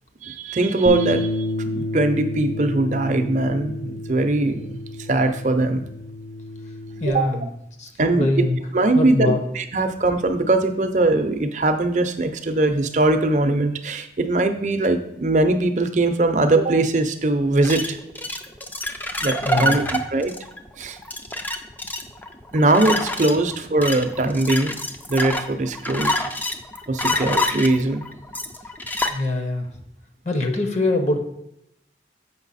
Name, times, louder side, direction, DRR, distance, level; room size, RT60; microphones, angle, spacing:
voice 1, 0.2-4.8 5.1-5.9 7.1-7.3 8.0-8.5 8.7-18.0 19.2-20.3 20.8-21.0 22.5-24.7 25.1-26.1 26.9-28.0, right 2 dB, 40° right, 8 dB, 0.6 m, -21 dB
Bass guitar, 0.9-7.1, left 1 dB, 80° left, 0.8 m, -30 dB
voice 2, 7.0-7.5 7.8-8.6 8.9-9.4 19.4-19.8 27.0-27.2 29.1-29.7 30.2-31.2, left 2 dB, 40° left, 5 dB, 0.9 m, -23 dB
sound 1, 17.6-29.1, left 1 dB, 10° left, 0.4 m, -27 dB
7.2 x 5.4 x 4.1 m, 0.78 s
head